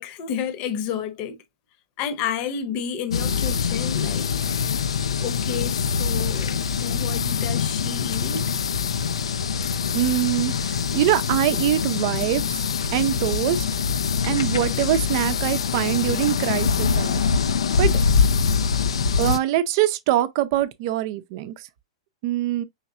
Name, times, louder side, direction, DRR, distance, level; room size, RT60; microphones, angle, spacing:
voice 1, 0.0-1.4 2.0-4.3 5.2-8.4, left 7 dB, 40° left, 1.0 m, -31 dB
sound 1, 3.1-19.4, left 6 dB, 70° left, 0.5 m, -24 dB
voice 2, 9.9-12.6 12.9-13.6 14.3-17.2 17.8-17.9 19.2-21.7 22.2-22.6, right 13 dB, 45° right, 0.6 m, -23 dB
5.7 x 3.1 x 2.7 m
figure-of-eight pair, 105°, 3 cm